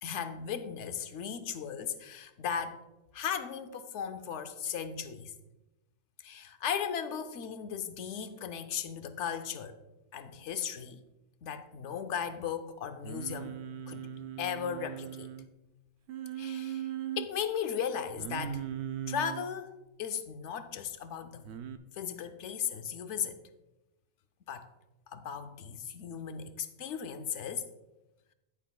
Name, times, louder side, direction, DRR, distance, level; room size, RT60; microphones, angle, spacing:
voice 1, 0.0-2.8 3.1-5.3 6.2-9.7 10.1-11.0 11.4-13.6 13.9-14.1 14.4-15.3 16.4-18.7 19.1-21.4 21.9-23.4 24.5-24.7 25.1-27.7, left 7 dB, 75° left, 1.0 m, -36 dB
Singing, 13.0-15.5 16.1-17.3 18.2-19.5 21.4-21.8, right 10 dB, 60° right, 0.7 m, -39 dB
10.0 x 9.7 x 2.3 m
omnidirectional pair, 1.3 m